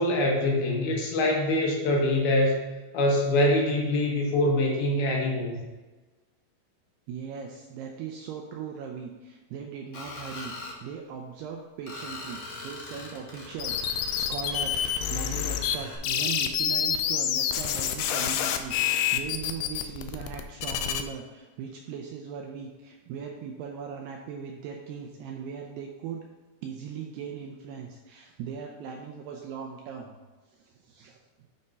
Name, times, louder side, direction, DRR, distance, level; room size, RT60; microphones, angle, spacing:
voice 1, 0.0-2.7 2.9-5.6, left 1 dB, 70° left, -1 dB, 2.6 m, -24 dB
voice 2, 7.1-10.5 10.8-26.2 26.6-30.2 30.6-31.2, right 7 dB, 85° right, 1 dB, 2.3 m, -39 dB
Screech, 9.9-10.8 11.9-16.0, left 2 dB, 55° left, 2.1 m, -41 dB
sound 1, 13.6-15.8 16.0-21.0, left 9 dB, 85° left, 2.3 m, -27 dB
8.6 x 4.3 x 5.2 m, 1.2 s
omnidirectional pair, 5.4 m